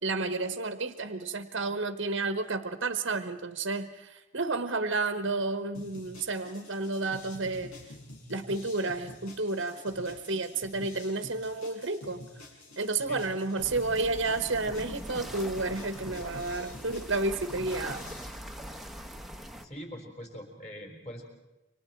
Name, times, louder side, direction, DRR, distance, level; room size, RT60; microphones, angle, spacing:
voice 1, 0.0-7.7 8.3-12.2 12.8-18.0, right 3 dB, 55° right, 9 dB, 1.1 m, -31 dB
sound 1, 5.7-18.3, left 2 dB, 75° left, 6.6 m, -48 dB
sound 2, 13.6-19.7, equal, ahead, 1.0 m, -42 dB
voice 2, 19.5-21.3, equal, 30° left, 2 dB, 4.5 m, -43 dB
29.0 x 25.0 x 4.5 m, 1.1 s
head